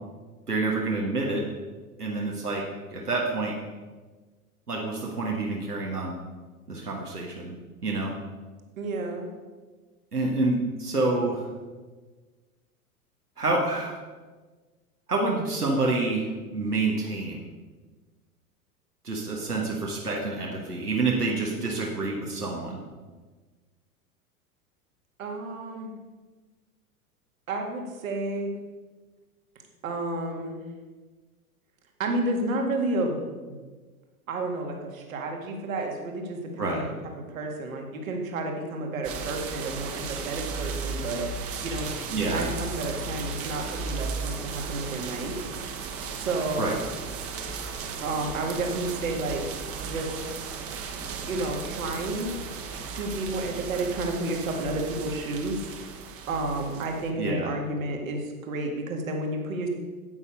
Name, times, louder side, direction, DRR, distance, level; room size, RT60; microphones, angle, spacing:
voice 1, 0.5-1.4 2.0-2.6 2.9-3.5 4.7-6.2 6.7-7.5 7.8-8.1 10.1-11.4 13.4-13.9 15.1-17.4 19.0-22.8 36.6-36.9 42.1-42.5 46.6-46.7 57.2-57.5, right 3 dB, 85° right, -1 dB, 1.6 m, -27 dB
voice 2, 8.8-9.3 25.2-25.9 27.5-28.5 29.8-30.6 32.0-33.6 34.3-41.2 41.6-41.9 42.2-45.4 46.1-46.7 48.0-49.4 49.8-50.1 51.3-52.3 52.9-55.6 56.3-59.7, right 2 dB, 60° right, 3 dB, 2.0 m, -31 dB
sound 1, 39.0-57.1, right 5 dB, 30° right, 1.2 m, -35 dB
9.6 x 8.3 x 5.3 m, 1.3 s
figure-of-eight pair, 90°, 45 cm